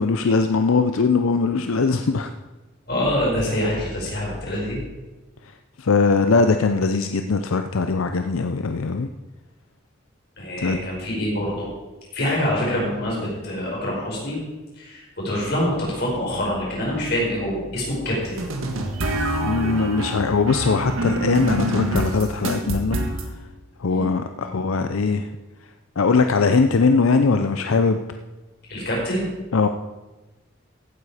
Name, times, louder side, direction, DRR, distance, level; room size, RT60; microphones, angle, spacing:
voice 1, 0.0-2.3 5.8-9.1 10.6-10.9 19.4-23.0 23.8-25.3 26.0-28.0 29.5-29.7, left 4 dB, 85° left, 7 dB, 0.6 m, -20 dB
voice 2, 2.9-4.8 10.4-11.7 12.1-14.4 14.8-18.4 23.9-24.1 28.7-29.2, left 1 dB, 50° left, -3 dB, 5.0 m, -25 dB
sound 1, 18.4-23.3, right 1 dB, 85° right, 1.7 m, -26 dB
15.5 x 9.0 x 5.0 m, 1.1 s
head